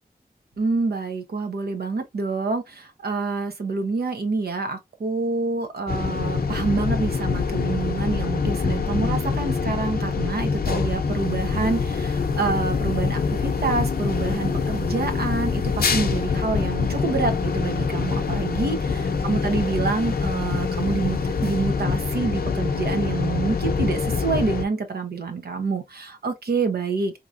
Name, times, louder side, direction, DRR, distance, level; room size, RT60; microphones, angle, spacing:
voice 1, 0.6-27.1, right 4 dB, 85° right, 0.9 m, -27 dB
sound 1, 5.9-24.6, left 5 dB, 75° left, 0.7 m, -25 dB
3.8 x 2.9 x 2.5 m
wide cardioid pair, 75°, 16 cm